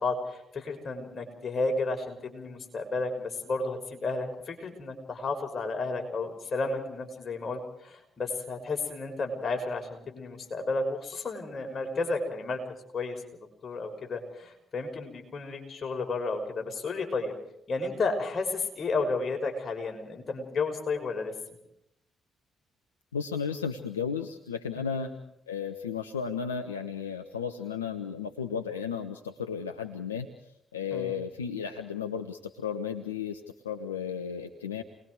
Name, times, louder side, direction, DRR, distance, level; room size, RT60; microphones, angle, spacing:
voice 1, 0.0-12.6 12.9-17.4 17.7-21.3 24.8-25.1 30.9-31.2, left 3 dB, 45° left, 3 dB, 6.2 m, -32 dB
voice 2, 23.1-25.1 25.5-34.8, left 7 dB, 85° left, 7 dB, 0.8 m, -34 dB
29.5 x 20.5 x 4.8 m, 0.79 s
figure-of-eight pair, 40°, 0 cm